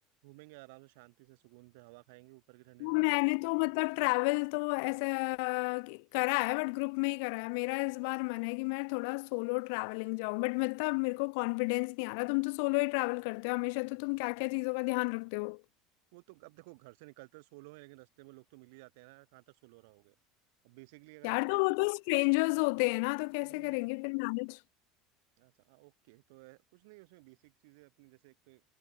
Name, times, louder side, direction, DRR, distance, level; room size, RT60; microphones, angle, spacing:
voice 1, 0.2-3.2 16.1-20.1 20.6-21.6 23.4-24.0 25.4-28.6, right 26 dB, 80° right, 2.9 m, -55 dB
voice 2, 2.8-15.6 21.2-24.6, left 34 dB, 75° left, 0.3 m, -31 dB
cardioid pair, 150°, 0 cm